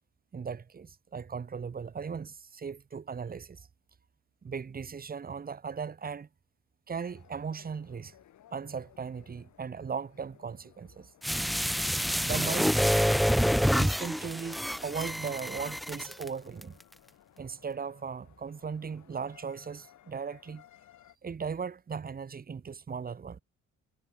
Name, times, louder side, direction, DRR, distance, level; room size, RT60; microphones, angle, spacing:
voice 1, 0.3-3.7 4.4-6.3 6.9-8.1 8.5-11.1 12.2-12.7 13.8-16.8 17.4-20.6 21.2-23.4, right 6 dB, 30° right, 1.1 m, -37 dB
sound 1, 7.0-21.2, left 12 dB, 75° left, 6.7 m, -60 dB
sound 2, 11.2-16.3 16.6-16.7, equal, ahead, 0.4 m, -27 dB
cardioid pair, 90°, 30 cm